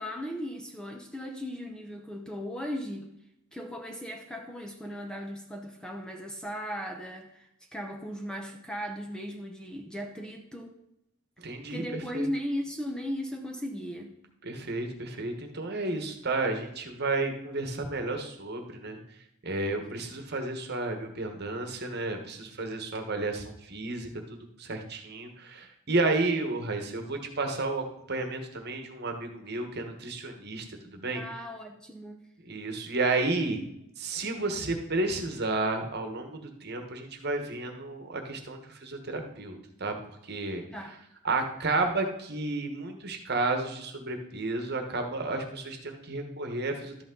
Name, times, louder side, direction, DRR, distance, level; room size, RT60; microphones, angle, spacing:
voice 1, 0.0-3.1 3.5-10.7 11.7-14.1 31.1-32.2 40.7-40.9, equal, 5° left, 3 dB, 0.7 m, -37 dB
voice 2, 11.4-12.3 14.4-19.0 19.4-31.2 32.4-33.6 34.0-39.9 40.2-40.6 41.2-47.0, right 2 dB, 45° right, 5 dB, 1.3 m, -32 dB
12.0 x 8.3 x 3.8 m, 0.81 s
head